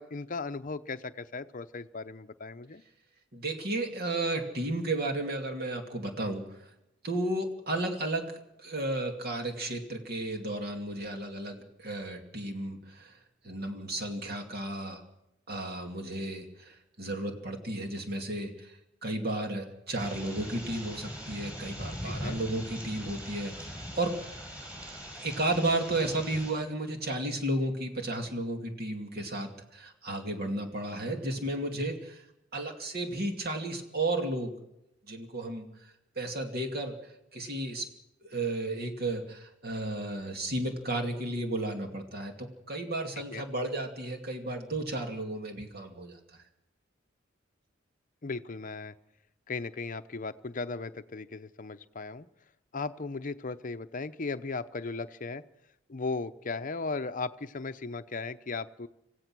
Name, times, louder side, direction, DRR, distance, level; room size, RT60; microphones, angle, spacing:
voice 1, 0.0-2.8 22.0-22.4 43.3-43.4 48.2-48.9 49.5-52.3 52.7-55.4 55.9-58.9, left 3 dB, 40° left, 10 dB, 0.7 m, -37 dB
voice 2, 3.3-6.7 7.0-8.3 8.6-13.2 13.4-15.0 15.5-24.1 25.2-32.3 32.5-34.5 35.1-35.7 36.2-37.0 37.3-37.9 38.2-46.2, right 2 dB, 50° right, 4 dB, 2.5 m, -33 dB
sound 1, 20.0-26.5, equal, 5° right, 6.3 m, -41 dB
26.5 x 16.0 x 6.1 m, 0.87 s
head